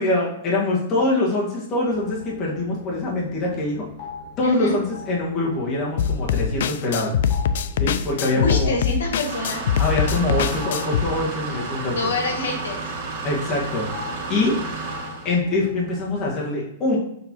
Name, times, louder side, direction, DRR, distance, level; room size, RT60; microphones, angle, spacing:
voice 1, 0.0-3.9 4.4-7.1 7.8-8.7 9.8-12.1 13.2-14.6 15.2-17.0, left 2 dB, 25° left, -4 dB, 1.6 m, -24 dB
sound 1, 1.8-16.3, left 4 dB, 40° left, 2.2 m, -42 dB
voice 2, 4.4-4.8 8.3-9.6 12.0-12.8, left 2 dB, 90° left, 1 dB, 1.9 m, -26 dB
sound 2, 6.0-11.0, left 8 dB, 65° left, 0.4 m, -23 dB
sound 3, 9.2-15.3, right 3 dB, 50° right, 2.0 m, -31 dB
6.9 x 5.4 x 3.0 m, 0.78 s
supercardioid pair, 160°, 0 cm